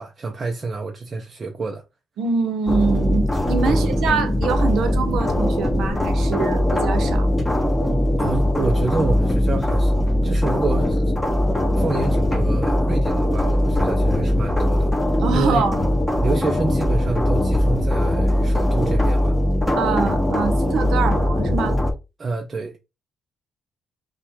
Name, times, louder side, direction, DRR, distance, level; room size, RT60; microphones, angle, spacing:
voice 1, 0.0-1.8 3.7-4.0 8.2-9.9 10.2-11.0 11.8-14.9 15.3-15.7 16.2-19.4 22.2-22.8, right 3 dB, 35° right, 0.7 m, -27 dB
voice 2, 2.2-7.3 15.2-15.8 19.8-21.8, right 5 dB, 75° right, 1.0 m, -24 dB
sound 1, 2.7-21.9, left 1 dB, 5° left, 1.8 m, -20 dB
5.6 x 2.5 x 3.6 m
cardioid pair, 90°, 0 cm